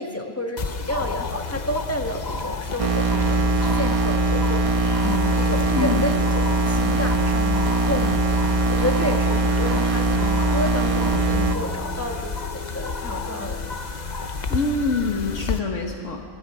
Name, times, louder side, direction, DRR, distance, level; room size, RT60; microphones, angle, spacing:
voice 1, 0.0-3.4 3.7-13.7, left 1 dB, 10° left, 3 dB, 1.5 m, -30 dB
sound 1, 0.6-15.6, left 4 dB, 40° left, 0.9 m, -31 dB
sound 2, 2.8-11.6, right 3 dB, 30° right, 0.9 m, -21 dB
sound 3, 5.0-14.7, right 1 dB, 75° right, 5.0 m, -47 dB
voice 2, 5.7-6.0 14.5-16.3, left 3 dB, 70° left, 2 dB, 1.7 m, -25 dB
26.5 x 24.0 x 4.9 m, 2.3 s
omnidirectional pair, 1.3 m